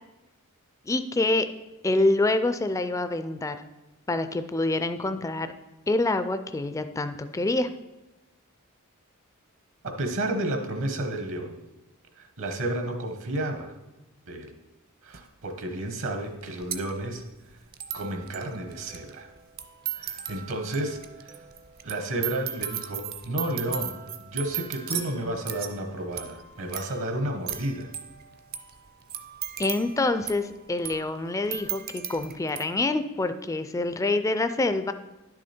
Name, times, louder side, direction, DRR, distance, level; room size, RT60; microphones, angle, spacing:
voice 1, 0.9-1.5 1.8-3.6 4.1-5.5 5.9-7.7 29.6-34.9, left 2 dB, 15° left, 10 dB, 0.3 m, -26 dB
voice 2, 9.8-11.6 12.2-13.7 14.3-14.5 15.0-17.2 17.9-19.3 20.0-21.4 21.8-27.9, right 1 dB, 65° right, 5 dB, 1.0 m, -31 dB
sound 1, 15.1-15.2 16.0-16.1 16.3-32.6, right 10 dB, 45° right, 0.6 m, -37 dB
11.0 x 6.3 x 4.3 m, 1.0 s
head